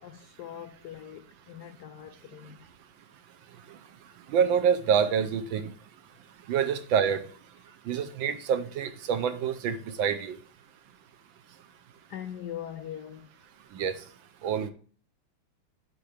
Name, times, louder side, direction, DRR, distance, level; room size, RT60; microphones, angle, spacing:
voice 1, 0.0-2.7 12.1-13.3, left 10 dB, 85° left, 0.8 m, -41 dB
voice 2, 4.3-5.7 6.5-7.2 7.9-10.4 13.7-13.9 14.4-14.7, right 7 dB, 70° right, 1.4 m, -26 dB
11.0 x 3.9 x 3.2 m
omnidirectional pair, 2.4 m